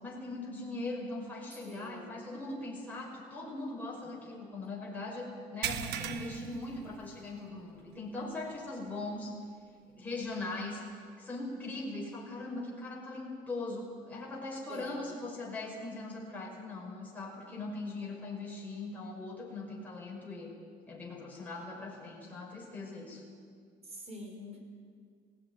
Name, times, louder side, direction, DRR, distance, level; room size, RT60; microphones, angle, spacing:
voice 1, 0.0-9.4 9.9-10.8 11.2-20.5 20.9-23.2, left 2 dB, 10° left, -4 dB, 5.8 m, -40 dB
voice 2, 1.7-2.2 14.7-15.1 23.8-24.6, equal, 40° right, 2 dB, 5.0 m, -45 dB
sound 1, 5.6-7.5 7.9-8.1 8.5-8.6 10.3-10.4, right 10 dB, 85° right, 1.2 m, -38 dB
18.0 x 18.0 x 9.8 m, 2.1 s
cardioid pair, 110°, 17 cm